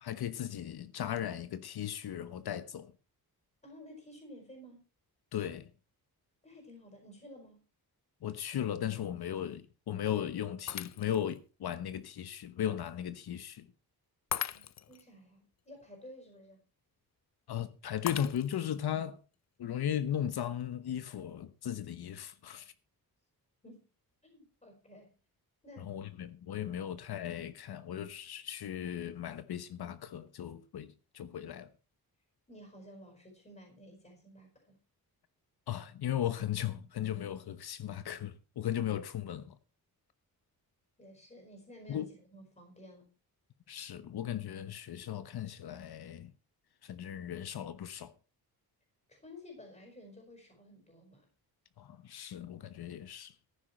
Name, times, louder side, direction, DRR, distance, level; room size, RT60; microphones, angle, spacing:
voice 1, 0.0-2.9 5.3-5.7 8.2-13.7 17.5-19.2 19.6-22.7 25.8-31.7 35.7-39.5 41.9-42.1 43.7-46.3 46.8-48.1 51.8-53.3, left 10 dB, 80° left, 1.1 m, -37 dB
voice 2, 3.6-4.8 6.4-7.6 14.5-16.6 23.6-23.9 24.2-25.1 25.6-25.9 32.5-34.8 41.0-43.1 49.1-51.3, left 1 dB, 20° left, 5.2 m, -53 dB
Shatter, 10.7-11.4 11.9-12.0 14.3-15.0 18.1-18.8, left 10 dB, 45° left, 0.5 m, -38 dB
14.5 x 10.0 x 4.4 m
wide cardioid pair, 155°, 38 cm